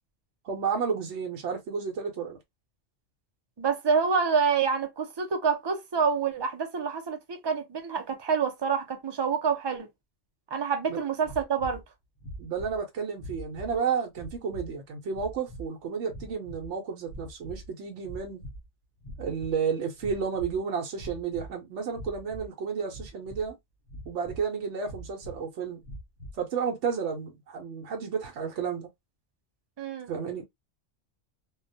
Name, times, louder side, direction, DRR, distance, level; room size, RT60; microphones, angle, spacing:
voice 1, 0.4-2.4 10.9-11.0 12.4-18.4 19.2-23.6 24.1-25.8 26.4-28.9 30.1-30.4, right 6 dB, 75° right, 0.9 m, -32 dB
voice 2, 3.6-9.9 10.5-11.8 29.8-30.1, right 6 dB, 40° right, 0.4 m, -27 dB
sound 1, 11.2-11.8 12.2-12.8 13.2-13.8 14.1-14.7 15.1-15.6 16.1-16.7 17.0-17.7 18.0-18.7 19.0-19.6 20.0-20.6 20.9-21.5 21.9-22.5 22.9-23.5 23.9-24.5 24.8-25.4 25.8-26.4, right 1 dB, 55° left, 0.8 m, -43 dB
2.3 x 2.2 x 2.6 m
omnidirectional pair, 1.2 m